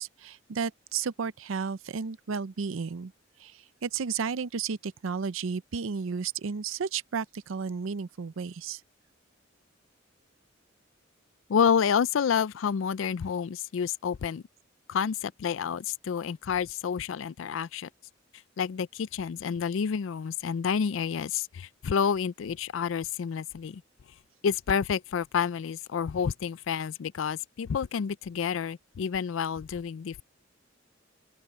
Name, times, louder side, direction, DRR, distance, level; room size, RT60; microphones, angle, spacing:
voice 1, 0.0-3.1 3.4-8.8, right 5 dB, 90° right, 0.5 m, -33 dB
voice 2, 11.5-14.4 14.9-17.9 18.6-23.8 24.4-30.2, left 7 dB, 75° left, 0.4 m, -29 dB
open air
head